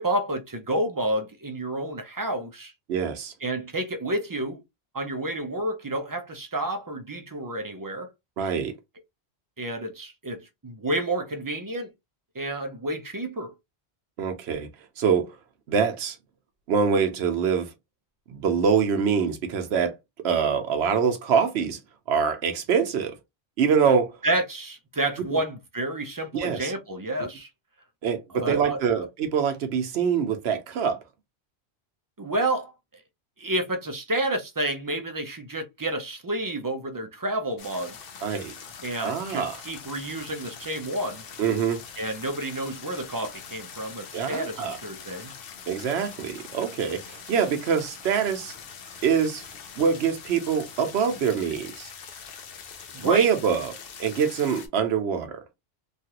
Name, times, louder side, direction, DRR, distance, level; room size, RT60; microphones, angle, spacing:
voice 1, 0.0-2.7 3.4-4.6 4.9-8.1 9.6-11.9 12.3-13.5 24.2-27.5 28.3-29.1 32.2-32.7 33.4-38.0 38.8-41.3 42.0-45.3 52.9-53.3, right 1 dB, 30° right, 0.4 m, -30 dB
voice 2, 2.9-3.3 8.4-8.7 14.2-14.7 15.0-15.3 15.7-16.2 16.7-17.7 18.3-20.0 20.2-21.8 22.1-23.2 23.6-24.2 25.3-25.4 26.3-26.7 28.0-31.0 38.2-38.5 39.0-39.6 41.4-41.8 44.1-44.8 45.7-48.5 49.0-49.4 49.8-51.9 53.0-53.7 54.0-55.4, right 6 dB, 80° right, 0.9 m, -24 dB
sound 1, 37.6-54.7, left 6 dB, 65° left, 0.8 m, -43 dB
3.2 x 2.4 x 2.8 m
omnidirectional pair, 1.1 m